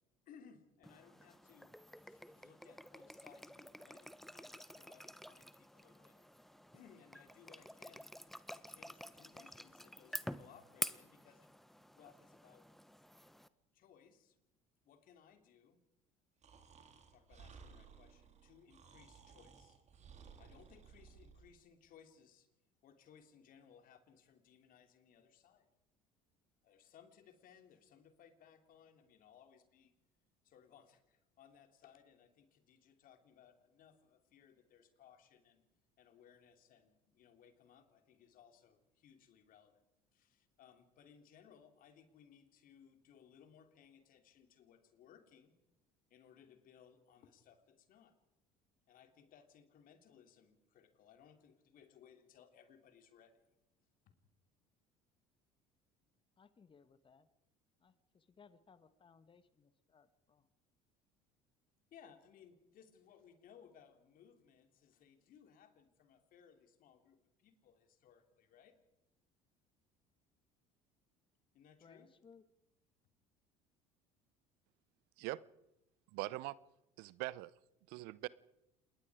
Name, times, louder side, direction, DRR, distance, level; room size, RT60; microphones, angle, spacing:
voice 1, 0.3-6.2 6.7-8.1 8.5-11.5 11.9-12.7 13.7-14.4 14.8-15.8 17.1-19.8 20.4-22.5 22.8-25.7 26.6-29.9 30.4-35.6 36.0-39.8 40.1-45.6 46.1-48.2 48.9-53.5 54.0-54.1 61.9-68.8 71.5-72.1, left 8 dB, 55° left, 7 dB, 3.1 m, -63 dB
sound 1, 0.8-13.5, equal, ahead, 1.0 m, -49 dB
Breathing, 16.4-21.5, right 6 dB, 40° right, 3.4 m, -58 dB
voice 2, 56.4-57.3 57.8-60.5 71.8-72.4, left 5 dB, 30° left, 13 dB, 1.5 m, -64 dB
voice 3, 76.1-76.6 77.0-77.5 77.9-78.3, right 20 dB, 70° right, 21 dB, 0.7 m, -42 dB
27.5 x 21.0 x 4.9 m, 0.91 s
hypercardioid pair, 70°, 17 cm